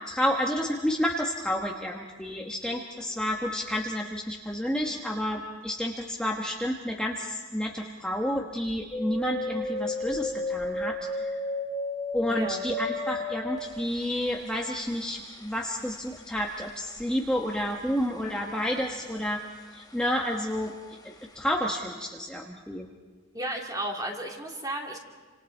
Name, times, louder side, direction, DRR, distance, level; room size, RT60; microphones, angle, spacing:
voice 1, 0.1-11.4 12.1-19.4 19.7-20.7 21.0-22.9, equal, 5° left, -1 dB, 1.3 m, -30 dB
sound 1, 8.9-18.3 18.6-19.4 19.8-20.7 21.1-21.2, left 2 dB, 20° left, 3.1 m, -34 dB
voice 2, 12.3-12.7 23.3-25.0, right 1 dB, 20° right, 1 dB, 2.5 m, -34 dB
28.5 x 26.5 x 4.5 m, 1.4 s
head